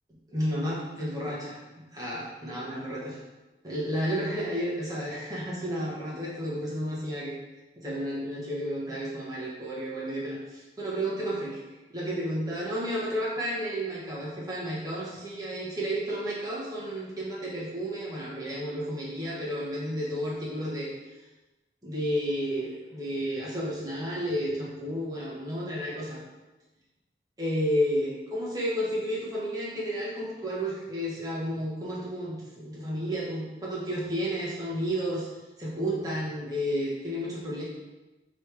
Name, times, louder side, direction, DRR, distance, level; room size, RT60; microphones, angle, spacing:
voice 1, 0.3-3.2 3.6-7.3 7.8-11.6 11.9-20.9 21.8-26.2 27.4-35.3 35.6-37.6, equal, 20° right, -6 dB, 1.1 m, -32 dB
4.5 x 3.1 x 3.4 m, 1.1 s
head